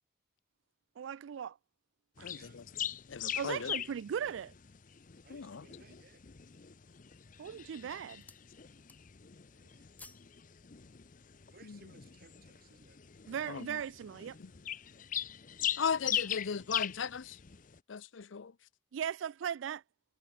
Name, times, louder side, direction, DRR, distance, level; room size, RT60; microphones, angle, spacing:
voice 1, 1.0-1.6 2.2-2.3 3.4-4.5 7.4-8.2 13.3-14.4 18.9-19.8, right 8 dB, 90° right, 0.3 m, -38 dB
voice 2, 2.2-3.7 5.3-5.6 11.6-11.9 13.5-13.8 14.4-14.5 15.8-17.4 17.9-18.5, left 6 dB, 85° left, 0.6 m, -38 dB
sound 1, 2.2-17.8, left 10 dB, 45° left, 0.6 m, -41 dB
sound 2, 3.8-4.6 5.2-5.3 5.8-6.3 7.0-7.4 7.7-8.5 8.8-9.3 9.6-10.3 10.7-10.8, left 3 dB, 10° left, 1.6 m, -58 dB
voice 3, 5.2-6.2 9.5-9.9 11.5-13.0, right 3 dB, 50° right, 2.9 m, -61 dB
head